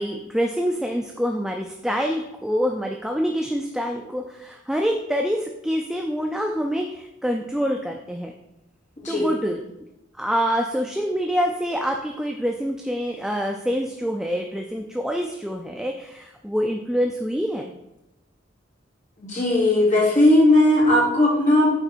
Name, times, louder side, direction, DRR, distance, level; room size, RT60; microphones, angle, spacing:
voice 1, 0.0-8.3 9.1-9.6 10.2-17.7, equal, 5° right, 2 dB, 0.4 m, -26 dB
voice 2, 19.2-21.7, left 1 dB, 40° left, -4 dB, 2.4 m, -17 dB
9.0 x 4.0 x 4.5 m, 0.90 s
head